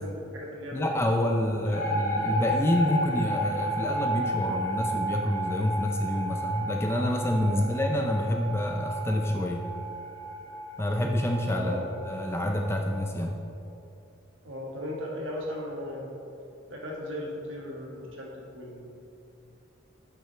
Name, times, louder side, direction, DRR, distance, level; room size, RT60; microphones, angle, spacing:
voice 1, 0.0-1.2 1.6-1.7 2.0-2.2 7.5-7.7 11.6-11.8 14.4-16.1 16.7-19.0, left 1 dB, 90° right, -1 dB, 1.3 m, -37 dB
voice 2, 0.7-9.6 10.8-13.4, left 1 dB, 15° left, 2 dB, 0.4 m, -27 dB
sound 1, 1.7-12.9, right 1 dB, 75° left, 1.4 m, -33 dB
8.4 x 6.3 x 3.2 m, 2.7 s
head